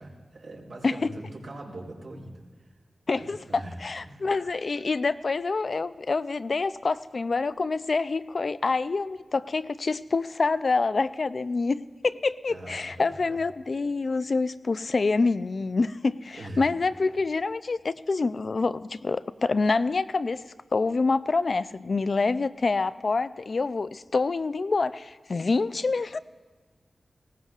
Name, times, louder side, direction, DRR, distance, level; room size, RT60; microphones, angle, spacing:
voice 1, 0.0-2.7 3.1-4.3 12.5-13.4 16.3-16.6, right 1 dB, 75° right, -3 dB, 3.9 m, -42 dB
voice 2, 3.1-20.4 20.7-26.2, left 3 dB, 55° left, 14 dB, 0.4 m, -26 dB
19.5 x 18.0 x 2.4 m, 1.4 s
wide cardioid pair, 110°, 0 cm